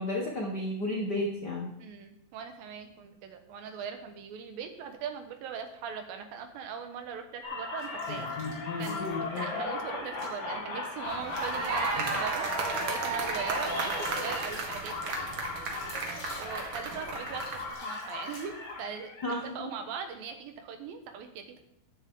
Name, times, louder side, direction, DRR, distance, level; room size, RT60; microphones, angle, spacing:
voice 1, 0.0-1.7 19.2-19.7, left 1 dB, 85° left, -1 dB, 0.9 m, -32 dB
voice 2, 1.8-8.3 8.8-12.5 12.8-15.4 16.4-19.2 19.4-21.6, right 6 dB, 70° right, 6 dB, 2.8 m, -40 dB
sound 1, 7.4-19.4, left 3 dB, 60° left, 4.1 m, -37 dB
sound 2, 7.8-9.4 10.1-10.4 10.9-18.9, left 2 dB, 30° left, 3.5 m, -50 dB
sound 3, 11.1-17.7, right 3 dB, 85° right, 1.1 m, -34 dB
14.0 x 9.9 x 3.8 m, 0.77 s
omnidirectional pair, 4.6 m